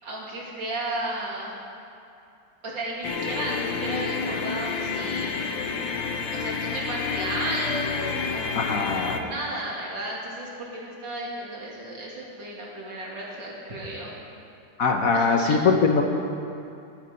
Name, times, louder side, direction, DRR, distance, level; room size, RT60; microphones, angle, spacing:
voice 1, 0.0-1.6 2.6-5.8 6.3-14.2 15.1-15.6, right 1 dB, 80° right, -4 dB, 3.3 m, -34 dB
sound 1, 3.0-9.2, left 5 dB, 85° left, 1.7 m, -29 dB
voice 2, 8.6-9.3 14.8-16.0, left 4 dB, 55° left, 3 dB, 1.2 m, -22 dB
21.0 x 8.7 x 5.2 m, 2.6 s
omnidirectional pair, 2.0 m